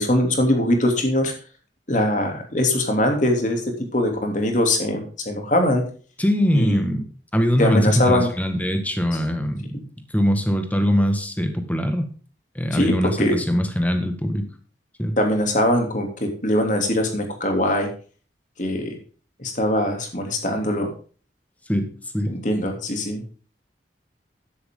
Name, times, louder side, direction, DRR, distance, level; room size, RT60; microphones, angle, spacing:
voice 1, 0.0-1.3 1.9-5.8 6.5-6.8 7.6-8.3 12.7-13.3 15.2-17.9 18.6-18.9 19.4-20.9 22.3-23.2, left 1 dB, 45° left, 4 dB, 3.0 m, -22 dB
voice 2, 6.2-7.0 7.3-9.9 10.1-12.1 12.5-14.5 15.0-15.2 21.7-21.9 22.1-22.3, equal, 10° left, 6 dB, 1.7 m, -22 dB
12.5 x 11.0 x 3.8 m, 0.41 s
head